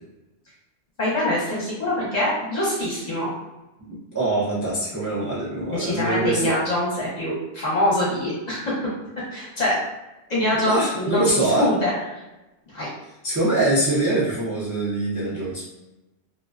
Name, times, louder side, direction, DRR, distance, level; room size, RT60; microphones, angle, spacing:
voice 1, 1.0-3.3 5.2-5.3 5.7-8.9 9.3-9.8 10.3-12.2 12.7-12.9, left 1 dB, 40° left, -7 dB, 0.8 m, -24 dB
voice 2, 3.8-6.5 10.5-11.7 13.2-15.7, right 2 dB, 25° right, -9 dB, 0.4 m, -23 dB
2.4 x 2.2 x 2.4 m, 1.0 s
omnidirectional pair, 1.2 m